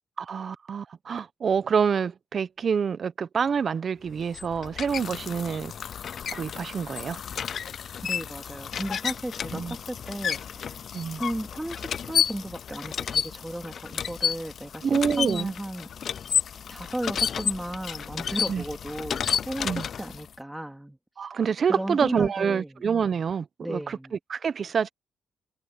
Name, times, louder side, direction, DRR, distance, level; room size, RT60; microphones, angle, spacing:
voice 1, 0.2-5.7 6.3-7.2 9.5-9.7 10.9-11.2 14.8-15.5 18.5-18.6 19.6-19.9 21.2-24.9, right 6 dB, 45° right, 1.0 m, -27 dB
sound 1, 4.1-20.3, left 8 dB, 55° left, 0.4 m, -31 dB
voice 2, 8.0-10.7 11.1-14.9 15.2-15.9 16.7-19.7 20.0-21.0 21.7-22.8 23.6-24.1, right 1 dB, 5° right, 3.2 m, -35 dB
cardioid pair, 90°, 0 cm